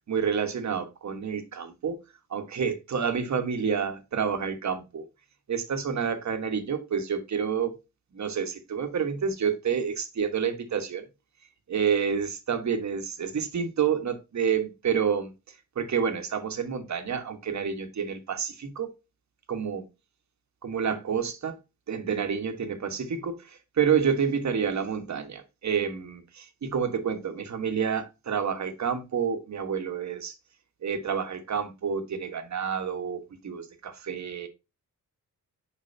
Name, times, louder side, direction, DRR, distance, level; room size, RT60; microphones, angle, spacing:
voice 1, 0.1-2.0 2.3-5.1 5.5-7.8 8.1-11.0 11.7-15.3 15.7-18.9 19.5-19.8 20.6-21.6 21.9-30.3 30.8-34.5, right 7 dB, 55° right, 1.3 m, -29 dB
6.6 x 5.3 x 2.7 m
wide cardioid pair, 120°, 34 cm